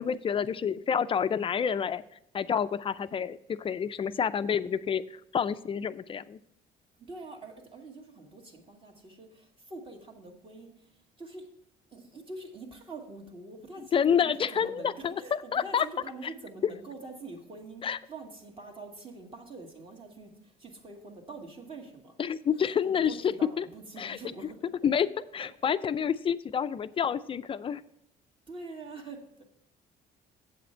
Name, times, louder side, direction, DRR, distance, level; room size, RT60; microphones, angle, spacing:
voice 1, 0.0-2.0 2.3-6.4 13.9-15.1 15.5-15.9 17.8-18.0 22.2-23.1 23.6-23.7 24.0-24.2 24.8-25.1 25.3-27.8, left 7 dB, 30° left, 13 dB, 0.4 m, -28 dB
voice 2, 7.0-10.7 11.2-11.5 11.9-22.1 22.5-24.6 25.4-25.5 28.5-29.4, right 3 dB, 30° right, 2 dB, 2.0 m, -45 dB
8.0 x 7.7 x 4.4 m, 0.75 s
cardioid pair, 110°, 17 cm